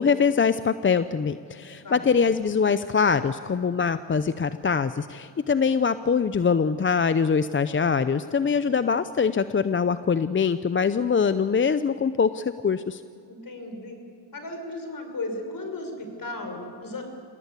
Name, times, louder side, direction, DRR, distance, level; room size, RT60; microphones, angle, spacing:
voice 1, 0.0-13.0, left 6 dB, 25° left, 13 dB, 0.6 m, -23 dB
voice 2, 13.3-14.0 14.3-17.2, left 2 dB, 45° left, 5 dB, 6.0 m, -35 dB
27.0 x 18.0 x 8.4 m, 2.4 s
cardioid pair, 75°, 46 cm